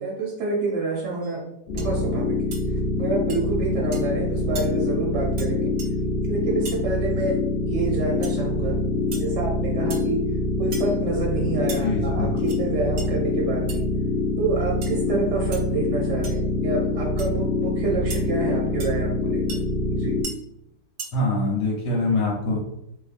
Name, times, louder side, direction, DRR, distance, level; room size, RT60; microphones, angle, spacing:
voice 1, 0.0-1.4 1.7-2.3 3.0-5.7 6.3-7.4 7.7-8.8 9.1-10.2 10.6-13.8 14.4-19.4 19.9-20.2, right 3 dB, 50° right, -3 dB, 0.9 m, -28 dB
sound 1, 1.2-1.4 1.8-1.9 2.5-2.6 3.3-3.4 3.9-4.1 4.5-4.7 5.4-5.5 5.8-5.9 6.6-6.8 8.2-8.4 9.1-9.3 9.9-10.1 10.7-11.0 11.7-11.8 12.4-12.6 13.0-13.1 13.7-13.8 14.8-15.0 15.5-15.6 16.2-16.4 17.2-17.3 18.1-18.2 18.8-18.9 19.5-19.6 20.2-20.3 21.0-21.1, right 4 dB, 80° right, 0.5 m, -36 dB
sound 2, 1.7-20.2, left 2 dB, 45° left, 0.8 m, -25 dB
voice 2, 11.8-12.3 21.1-22.6, left 2 dB, 80° left, -4 dB, 1.5 m, -24 dB
4.3 x 2.9 x 2.5 m, 0.77 s
omnidirectional pair, 1.8 m